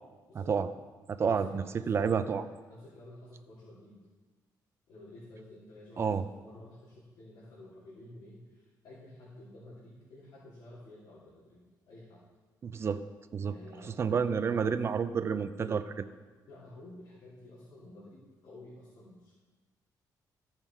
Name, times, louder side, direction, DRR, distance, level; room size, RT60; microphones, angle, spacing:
voice 1, 0.3-0.7 1.1-2.5 6.0-6.2 12.6-13.0 13.3-13.6 14.0-16.1, right 6 dB, 35° right, 10 dB, 0.5 m, -30 dB
voice 2, 1.3-4.0 4.9-12.2 13.5-14.8 16.5-19.4, left 1 dB, 85° left, -9 dB, 2.9 m, -51 dB
14.0 x 5.8 x 4.5 m, 1.3 s
cardioid pair, 135°, 7 cm